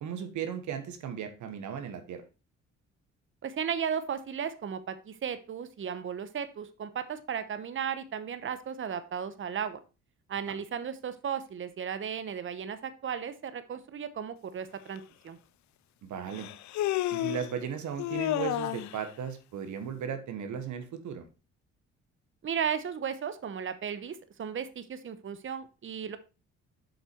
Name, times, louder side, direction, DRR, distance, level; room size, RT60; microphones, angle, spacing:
voice 1, 0.0-2.2 16.0-16.5 17.1-21.3, right 8 dB, 75° right, 8 dB, 1.3 m, -36 dB
voice 2, 3.4-9.8 10.3-15.4 22.4-26.2, right 7 dB, 40° right, 12 dB, 0.9 m, -35 dB
Human voice, 15.0-15.1 16.3-17.5 18.0-19.0, left 15 dB, 70° left, 0.5 m, -31 dB
7.5 x 5.6 x 4.4 m, 0.31 s
cardioid pair, 90°, 30 cm